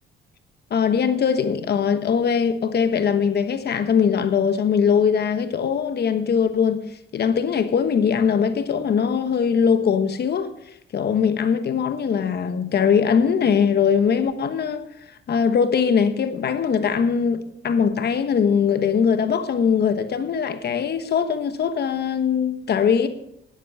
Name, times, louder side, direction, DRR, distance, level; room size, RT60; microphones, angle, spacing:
voice 1, 0.7-6.8 7.1-10.5 10.9-14.8 15.3-23.1, left 7 dB, 55° left, 1.2 m, -21 dB
11.0 x 11.0 x 5.5 m
cardioid pair, 90°, 20 cm